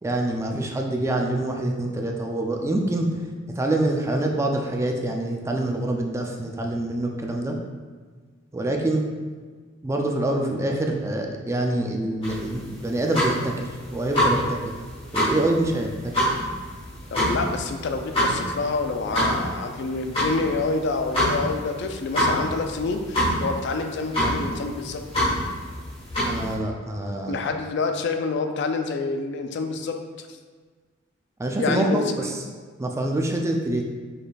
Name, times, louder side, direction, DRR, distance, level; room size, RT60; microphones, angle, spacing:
voice 1, 0.0-3.2 3.6-7.6 8.5-9.0 9.8-14.7 15.1-16.1 26.2-27.6 31.4-32.4 32.8-33.8, right 1 dB, 15° right, 1 dB, 0.4 m, -26 dB
sound 1, 12.2-26.5, equal, 30° left, 1.3 m, -26 dB
voice 2, 17.1-25.0 27.3-30.0 31.6-32.0, left 4 dB, 60° left, 6 dB, 0.4 m, -27 dB
5.1 x 4.1 x 2.3 m, 1.5 s
head